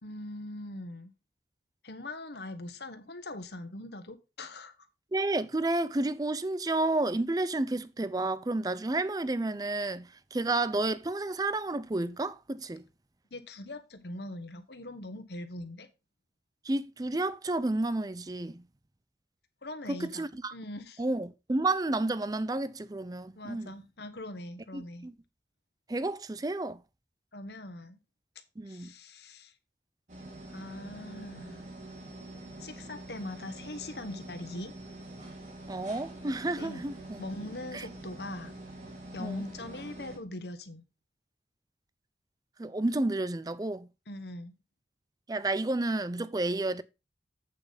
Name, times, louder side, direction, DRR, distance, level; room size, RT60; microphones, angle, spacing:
voice 1, 0.0-1.1 1.8-4.7 13.3-15.9 19.6-21.0 23.4-25.1 27.3-28.0 28.7-29.5 30.5-31.6 32.6-34.7 36.6-38.6 39.1-40.8 44.1-44.5, left 1 dB, 70° left, 1.2 m, -42 dB
voice 2, 5.1-12.8 16.6-18.6 19.9-20.5 21.0-23.7 24.7-25.1 25.9-26.8 28.6-28.9 35.7-37.2 37.7-37.8 39.2-39.4 42.6-43.9 45.3-46.8, right 2 dB, 20° right, 0.5 m, -31 dB
sound 1, 30.1-40.2, right 2 dB, 45° right, 2.9 m, -45 dB
8.3 x 6.9 x 4.0 m
head